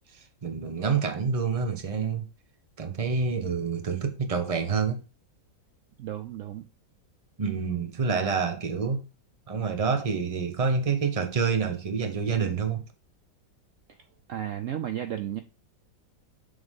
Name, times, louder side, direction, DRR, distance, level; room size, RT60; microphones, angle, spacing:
voice 1, 0.1-2.2 2.8-5.0 7.4-9.0 9.5-12.8, right 5 dB, 30° right, 0.7 m, -27 dB
voice 2, 6.0-6.6 14.3-15.4, right 11 dB, 75° right, 0.7 m, -33 dB
6.9 x 3.7 x 5.4 m
omnidirectional pair, 2.0 m